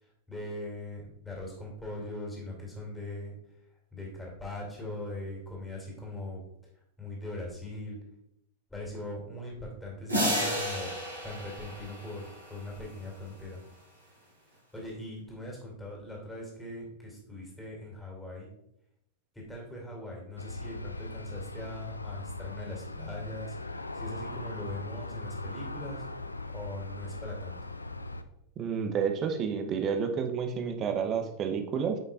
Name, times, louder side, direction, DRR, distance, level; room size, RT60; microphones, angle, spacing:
voice 1, 0.0-3.3 3.9-6.4 7.0-8.0 8.7-10.9 11.2-13.6 14.7-18.5 19.3-27.6, left 1 dB, 10° left, -2 dB, 2.7 m, -41 dB
sound 1, 10.1-12.6, equal, 85° right, 2.3 m, -31 dB
Aircraft, 20.4-28.2, left 2 dB, 80° left, 0.4 m, -40 dB
voice 2, 28.6-32.0, right 6 dB, 30° right, 6 dB, 0.9 m, -30 dB
9.1 x 5.6 x 2.5 m, 0.80 s
figure-of-eight pair, 90°, 0 cm